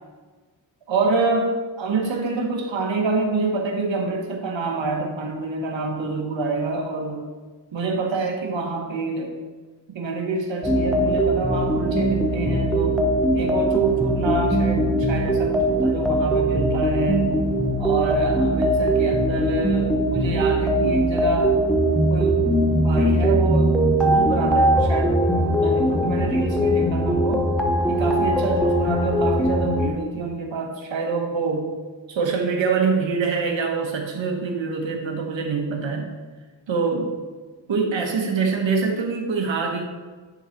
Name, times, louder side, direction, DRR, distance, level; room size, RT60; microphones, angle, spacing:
voice 1, 0.9-7.2 7.7-9.3 9.9-13.0 13.3-17.4 17.8-21.5 22.1-22.4 22.8-25.1 25.6-27.5 27.9-31.7 32.1-36.1 36.7-37.2 37.7-39.8, right 4 dB, 75° right, 2 dB, 1.4 m, -26 dB
sound 1, 10.6-29.9, right 1 dB, ahead, 0.8 m, -21 dB
10.0 x 4.0 x 4.5 m, 1.4 s
wide cardioid pair, 115°, 45 cm